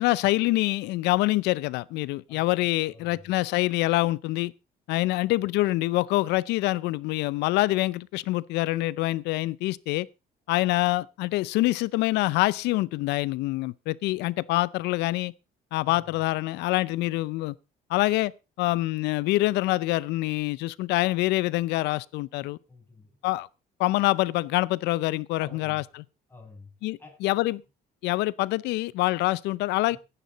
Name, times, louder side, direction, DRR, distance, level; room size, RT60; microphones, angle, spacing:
voice 1, 0.0-4.5 4.9-10.1 10.5-15.3 15.7-17.6 17.9-18.3 18.6-22.6 23.2-23.5 23.8-26.0 26.8-27.6 28.0-30.0, left 19 dB, 90° left, 0.6 m, -25 dB
voice 2, 2.3-3.2 5.2-5.3 15.8-16.2 22.3-23.2 25.4-25.8 26.3-26.7 27.0-27.2 29.9-30.0, left 3 dB, 15° left, 7.7 m, -50 dB
15.0 x 11.0 x 4.1 m
cardioid pair, 110°, 17 cm